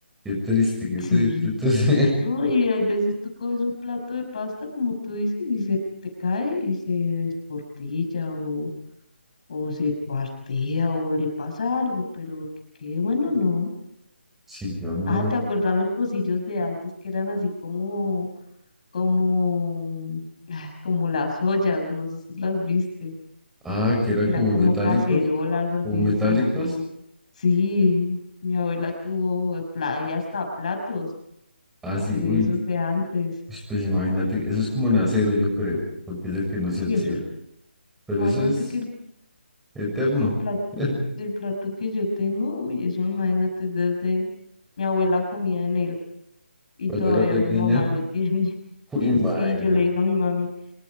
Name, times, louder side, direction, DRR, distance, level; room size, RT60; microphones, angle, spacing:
voice 1, 0.3-2.1 14.5-15.3 23.6-25.2 25.8-26.7 31.8-32.5 33.5-35.8 36.1-37.2 38.1-38.5 39.8-40.3 40.8-40.9 46.9-47.8 48.9-49.8, left 2 dB, 5° right, -3 dB, 6.9 m, -23 dB
voice 2, 1.0-1.5 2.2-5.8 6.2-8.7 9.5-12.4 12.8-13.7 15.1-16.8 17.0-18.3 18.9-23.1 24.3-26.4 27.4-28.2 28.4-31.1 31.9-33.4 36.8-37.2 38.1-38.9 40.4-40.6 41.2-44.3 44.8-45.9 46.8-48.5 49.0-50.5, left 3 dB, 40° left, 3 dB, 6.1 m, -25 dB
27.0 x 24.0 x 5.1 m, 0.78 s
figure-of-eight pair, 150°, 6 cm